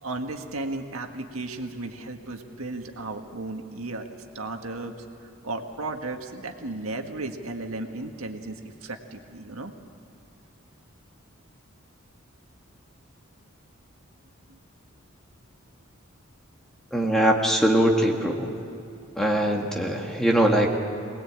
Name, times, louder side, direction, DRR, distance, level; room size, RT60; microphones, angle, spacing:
voice 1, 0.0-4.1 4.3-5.0 5.4-9.7 14.5-14.6, right 2 dB, 80° right, 4 dB, 1.7 m, -34 dB
voice 2, 16.9-18.5 19.2-20.7, right 1 dB, ahead, -1 dB, 2.0 m, -22 dB
24.0 x 19.5 x 8.8 m, 2.7 s
head